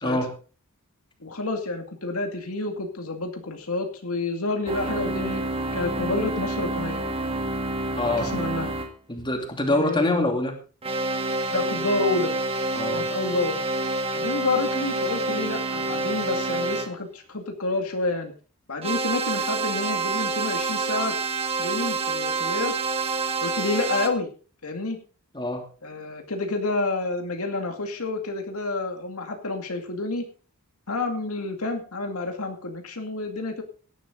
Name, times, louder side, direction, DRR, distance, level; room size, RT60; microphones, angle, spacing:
voice 1, 0.0-0.3 8.0-8.3 9.1-10.6 12.7-13.0 25.3-25.6, left 1 dB, 20° left, 3 dB, 2.8 m, -25 dB
voice 2, 1.2-5.4 5.7-7.1 8.0-8.8 9.7-10.1 11.5-12.3 12.9-13.6 14.1-18.3 18.7-21.2 21.5-22.7 23.4-24.3 24.6-25.0 25.8-30.3 30.9-33.6, left 2 dB, 70° left, 4 dB, 2.3 m, -29 dB
sound 1, 4.7-8.9 10.8-16.9 18.8-24.1, right 3 dB, 25° right, 1.9 m, -28 dB
17.0 x 11.5 x 3.9 m, 0.37 s
head